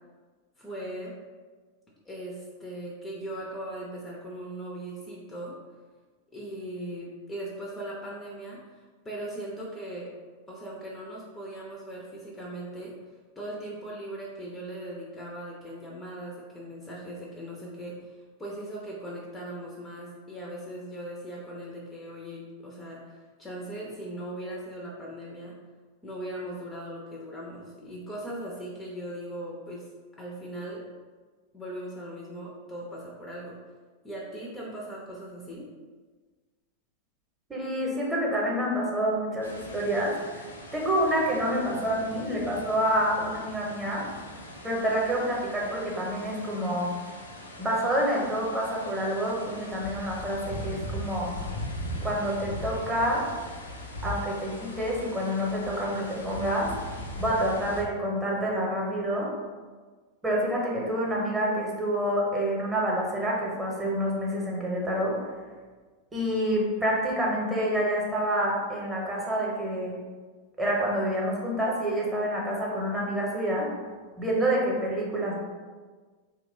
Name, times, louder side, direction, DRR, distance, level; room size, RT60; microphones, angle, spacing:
voice 1, 0.6-1.1 2.0-5.6 6.3-10.1 10.5-25.5 26.0-29.9 30.2-30.8 31.5-33.6 34.0-35.7, right 1 dB, 15° left, -3 dB, 0.5 m, -39 dB
voice 2, 37.5-44.0 44.6-46.9 47.6-51.3 52.0-53.2 54.0-56.7 57.2-59.3 60.2-65.2 66.1-69.9 70.6-73.7 74.2-75.3, equal, 10° right, -4 dB, 0.8 m, -28 dB
sound 1, 39.4-57.8, left 1 dB, 75° left, 0.4 m, -40 dB
2.9 x 2.2 x 3.7 m, 1.4 s
figure-of-eight pair, 90°, 0 cm